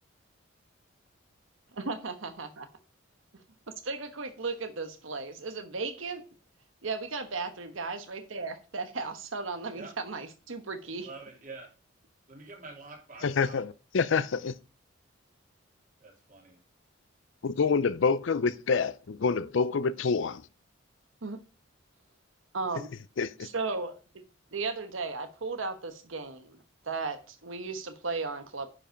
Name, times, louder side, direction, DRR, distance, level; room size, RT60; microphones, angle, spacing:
voice 1, 1.8-2.7 3.8-6.2 6.8-11.1 21.2-21.4 22.5-22.9 23.4-23.9 24.5-28.7, right 4 dB, 75° right, 1.2 m, -35 dB
voice 2, 11.0-11.7 12.3-13.6 16.0-16.6, right 3 dB, 40° right, 2.9 m, -46 dB
voice 3, 13.2-14.6 17.4-20.4 23.2-23.5, left 5 dB, 65° left, 0.5 m, -27 dB
9.7 x 5.4 x 5.1 m
head